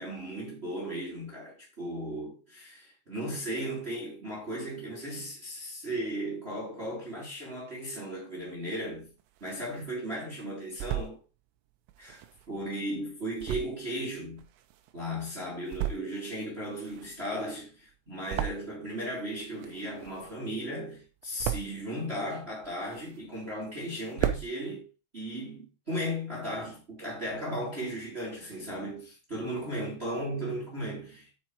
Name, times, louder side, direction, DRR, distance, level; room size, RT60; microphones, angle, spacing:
voice 1, 0.0-9.1 9.4-11.2 12.0-12.2 12.5-14.4 14.9-24.9 25.1-31.4, equal, 40° right, 0.8 m, -36 dB
sound 1, 9.0-10.0 10.4-11.2 11.9-15.1 15.5-16.3 16.6-19.0 19.3-20.6 20.9-21.9 22.4-23.5 23.8-23.9 24.1-24.5, right 12 dB, 85° right, 3.4 m, -36 dB
9.1 x 4.9 x 4.5 m
omnidirectional pair, 5.7 m